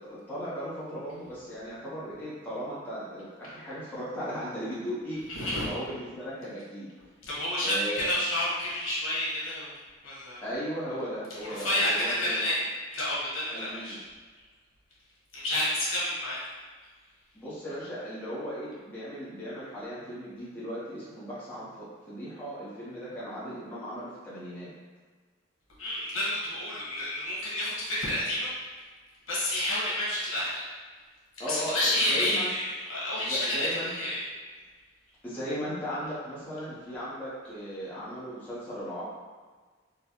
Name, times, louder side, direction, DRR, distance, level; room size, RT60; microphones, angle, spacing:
voice 1, 0.0-5.2 5.7-6.9 7.6-8.1 10.4-12.4 13.5-14.0 17.3-24.7 31.4-32.5 33.3-33.9 35.2-39.0, equal, 10° left, -11 dB, 0.9 m, -37 dB
voice 2, 5.3-5.7 7.2-9.7 10.0-10.4 11.5-12.6 12.9-14.0 15.3-16.4 25.8-28.5 29.3-30.6 31.5-32.6 32.9-34.2, left 1 dB, 80° left, -7 dB, 1.2 m, -29 dB
4.0 x 2.2 x 2.8 m, 1.4 s
head